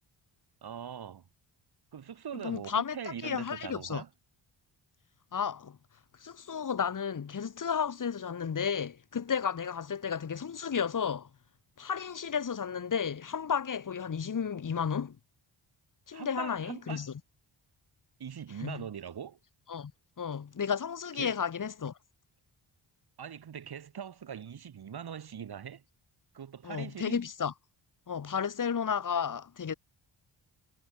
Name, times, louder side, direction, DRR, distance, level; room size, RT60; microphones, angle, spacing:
voice 1, 0.6-1.3 1.9-4.1 16.1-17.1 18.2-19.4 21.2-21.4 23.2-25.8 26.3-27.2, right 8 dB, 55° right, 2.0 m, -42 dB
voice 2, 2.4-3.0 3.2-4.0 5.3-5.8 6.2-11.3 11.8-15.2 16.1-17.1 18.6-18.8 19.7-19.9 20.2-21.9 26.6-27.5 28.1-29.7, left 7 dB, 40° left, 2.2 m, -33 dB
wide cardioid pair, 140°, 46 cm